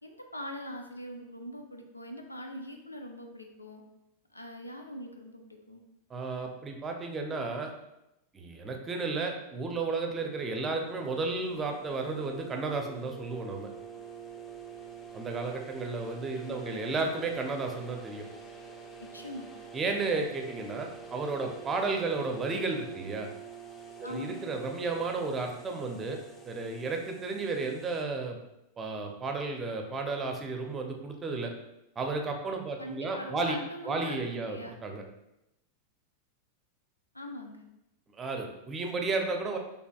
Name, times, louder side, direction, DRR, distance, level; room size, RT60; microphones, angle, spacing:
voice 1, 0.0-3.8 4.3-5.8 16.4-17.0 19.0-19.5 24.0-24.5 32.8-34.8 37.1-37.7, equal, 85° left, 4 dB, 0.5 m, -42 dB
voice 2, 6.1-7.7 8.3-13.7 15.1-18.3 19.7-23.3 24.0-26.2 26.4-28.4 28.8-31.5 32.0-33.6 33.8-35.0 38.2-39.6, right 3 dB, 20° right, 3 dB, 0.6 m, -33 dB
sound 1, 10.2-28.0, right 6 dB, 20° left, 0.6 m, -47 dB
6.4 x 2.8 x 2.3 m, 0.89 s
figure-of-eight pair, 90°, 0 cm